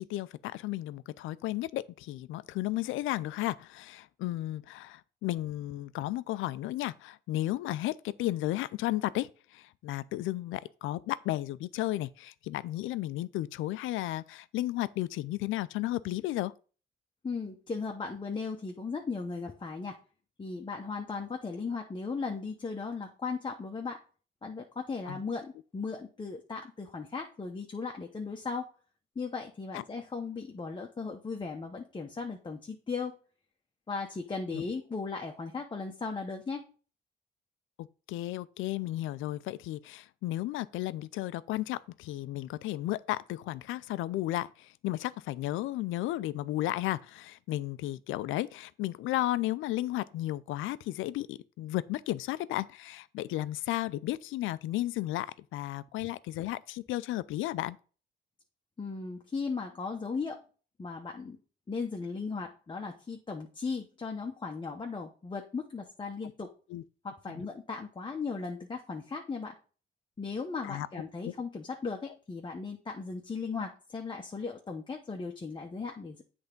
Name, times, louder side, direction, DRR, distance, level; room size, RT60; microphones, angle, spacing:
voice 1, 0.0-16.5 25.1-25.2 29.7-29.8 34.5-34.6 37.8-57.8 66.7-66.8 67.3-67.4 70.6-70.9 71.3-71.4, left 15 dB, 85° left, 0.4 m, -34 dB
voice 2, 17.2-20.0 20.4-24.0 24.4-28.7 29.1-33.1 33.9-36.6 58.8-60.4 60.8-61.4 61.7-66.5 67.0-69.6 70.2-76.2, left 4 dB, 25° left, 0.9 m, -37 dB
8.0 x 3.5 x 5.1 m
cardioid pair, 90°, 20 cm